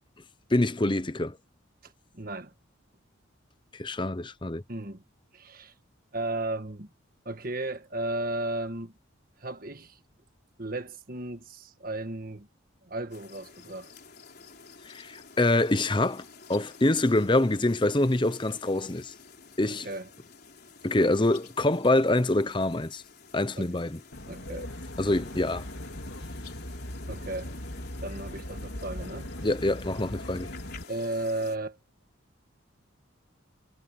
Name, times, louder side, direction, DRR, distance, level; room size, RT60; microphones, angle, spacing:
voice 1, 0.5-1.4 3.7-4.6 14.9-16.2 16.5-19.1 19.6-19.9 20.8-23.0 23.3-24.0 25.0-25.7 29.4-30.5, left 2 dB, 25° left, 0.8 m, -25 dB
voice 2, 1.8-2.5 4.7-5.0 5.3-5.7 6.1-6.9 7.2-8.9 9.4-10.0 10.6-12.5 12.9-13.9 19.7-20.1 23.6-23.7 24.3-24.7 27.1-27.5 28.0-29.3 30.9-31.8, right 2 dB, 45° right, 1.6 m, -34 dB
sound 1, 13.1-31.6, left 5 dB, 50° left, 4.3 m, -51 dB
Aircraft, 24.1-30.8, left 1 dB, 65° left, 2.8 m, -39 dB
head